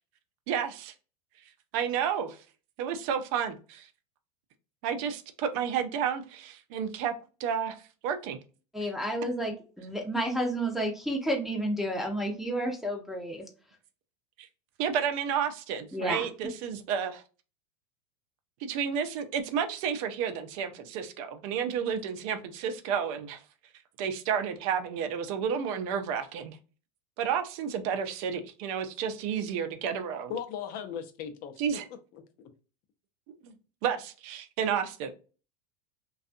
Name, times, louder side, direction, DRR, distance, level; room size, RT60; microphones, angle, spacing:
voice 1, 0.5-0.9 1.7-2.4 2.8-3.9 4.8-7.1 7.4-7.8 8.0-8.4 8.8-8.9 14.4-14.5 14.8-17.2 18.6-23.4 24.0-26.6 27.2-30.3 31.6-31.9 33.4-33.5 33.8-35.1, right 7 dB, 60° right, 0.6 m, -31 dB
voice 2, 8.7-13.4 15.9-16.3, right 1 dB, ahead, 0.7 m, -31 dB
voice 3, 30.3-31.5 32.1-32.2, left 8 dB, 45° left, 0.6 m, -37 dB
2.5 x 2.3 x 2.5 m
hypercardioid pair, 105°, 21 cm